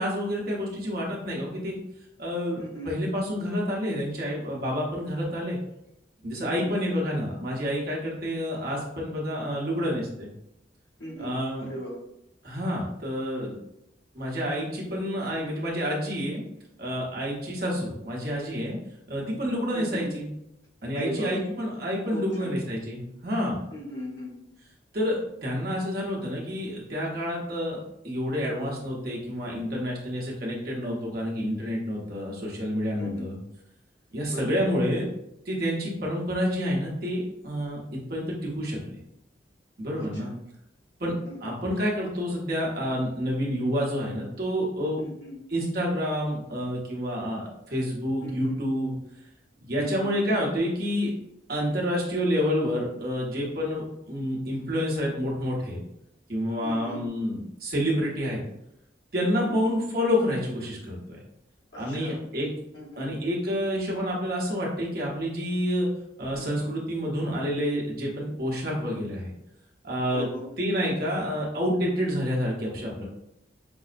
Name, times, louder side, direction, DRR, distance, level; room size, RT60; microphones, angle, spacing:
voice 1, 0.0-1.8 2.2-5.6 6.2-10.3 11.2-11.7 12.4-13.6 14.1-16.4 16.8-18.8 19.1-20.3 20.8-23.6 24.9-33.4 34.1-35.1 35.5-39.0 39.8-40.3 41.0-41.1 41.4-45.1 45.5-48.9 49.6-51.1 51.5-55.8 56.3-58.4 59.1-61.2 61.8-62.5 63.0-65.9 66.2-69.3 69.8-70.3 70.6-73.0, equal, 55° right, -3 dB, 0.9 m, -28 dB
voice 2, 2.6-2.9 6.4-6.7 11.0-12.0 19.7-20.1 20.9-21.3 22.1-22.5 23.7-24.4 33.0-33.2 34.3-34.5 40.0-40.3 41.3-41.5 45.0-45.4 48.2-48.6 49.8-50.1 56.6-57.0 59.4-59.8 61.7-62.2 62.7-63.1 66.4-66.8 70.1-70.5, equal, 80° left, -4 dB, 1.1 m, -38 dB
5.3 x 2.0 x 2.5 m, 0.81 s
head